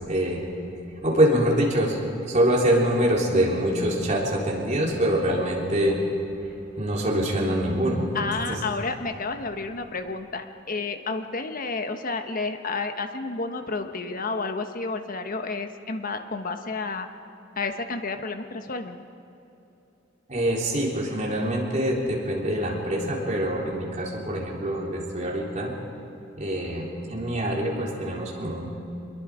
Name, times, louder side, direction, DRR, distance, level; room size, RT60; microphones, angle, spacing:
voice 1, 0.1-0.4 1.0-2.0 2.3-6.0 6.8-8.1 8.5-8.6 20.3-25.7 26.4-28.7, right 1 dB, 35° right, -3 dB, 3.8 m, -24 dB
voice 2, 8.1-17.1 17.6-19.0, left 3 dB, 45° left, 7 dB, 1.2 m, -31 dB
25.0 x 22.0 x 5.0 m, 2.9 s
head